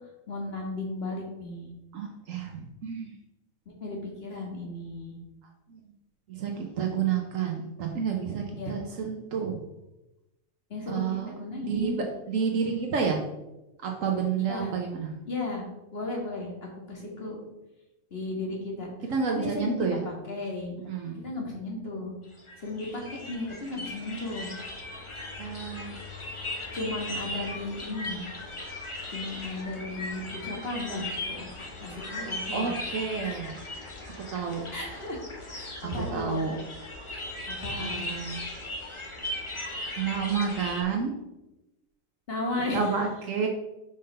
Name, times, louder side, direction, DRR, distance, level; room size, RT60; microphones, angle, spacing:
voice 1, 0.3-1.7 3.8-5.2 8.6-8.7 10.7-12.0 14.5-14.8 15.3-15.7 15.9-17.4 18.1-18.9 19.3-19.8 20.1-20.7 21.0-22.1 22.6-24.5 26.7-28.2 29.1-31.5 31.8-32.7 33.2-33.4 34.7-35.2 35.5-36.5 37.5-38.1 42.3-42.8, left 2 dB, 45° left, -1 dB, 2.1 m, -35 dB
voice 2, 1.9-3.1 5.7-5.9 6.3-9.6 10.9-11.4 11.7-13.2 13.8-15.1 19.1-20.0 20.7-21.2 25.4-26.0 32.5-33.6 34.2-34.7 35.8-36.6 37.8-38.4 40.0-41.1 42.7-43.5, right 6 dB, 75° right, 2 dB, 1.2 m, -30 dB
sound 1, 22.2-40.8, left 1 dB, 25° left, 1.1 m, -38 dB
5.7 x 5.0 x 5.5 m, 0.96 s
omnidirectional pair, 1.4 m